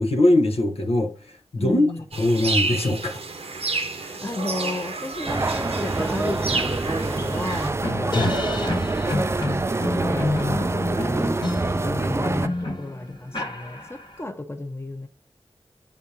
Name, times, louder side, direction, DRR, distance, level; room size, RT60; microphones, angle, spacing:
voice 1, 0.0-1.9 2.2-3.2 8.1-8.4, left 1 dB, 80° left, 1.0 m, -21 dB
voice 2, 1.6-2.1 4.0-8.2 9.1-9.3 9.8-11.4 11.9-15.1, left 2 dB, 25° left, 0.9 m, -33 dB
sound 1, 2.1-7.7, right 3 dB, 85° right, 0.9 m, -30 dB
sound 2, 5.3-12.5, right 3 dB, 25° right, 0.3 m, -26 dB
sound 3, 5.7-5.8 6.1-14.2, left 2 dB, 50° left, 1.5 m, -29 dB
10.0 x 3.6 x 2.7 m
cardioid pair, 50°, 10 cm